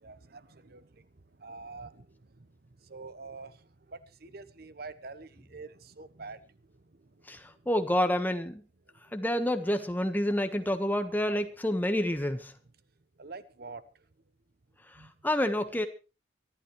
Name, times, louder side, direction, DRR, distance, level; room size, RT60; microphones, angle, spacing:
voice 1, 0.0-0.9 1.4-2.1 2.9-3.5 3.9-6.4 13.2-13.8 15.0-15.1, right 3 dB, 60° right, 1.0 m, -45 dB
voice 2, 7.7-8.6 9.1-12.5 15.2-15.9, left 1 dB, 10° left, 1.4 m, -28 dB
24.5 x 12.0 x 3.2 m
head